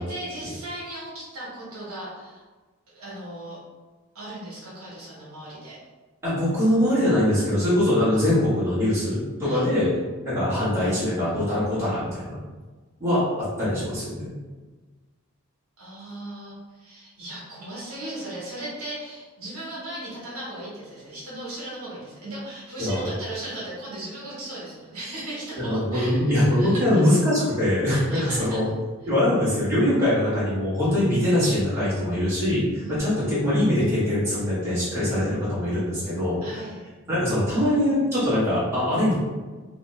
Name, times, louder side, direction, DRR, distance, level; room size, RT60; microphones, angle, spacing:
voice 1, 0.0-2.4 2.9-3.6 4.1-5.8 9.4-9.7 15.8-27.0 27.9-28.6 30.9-31.1 32.8-33.1 36.4-36.9, right 1 dB, 75° right, -7 dB, 1.2 m, -37 dB
voice 2, 6.2-9.9 10.2-12.4 13.0-14.3 22.8-23.1 25.6-28.7 29.1-36.4 37.1-39.2, left 1 dB, 10° right, -12 dB, 1.3 m, -22 dB
3.0 x 2.2 x 3.2 m, 1.3 s
head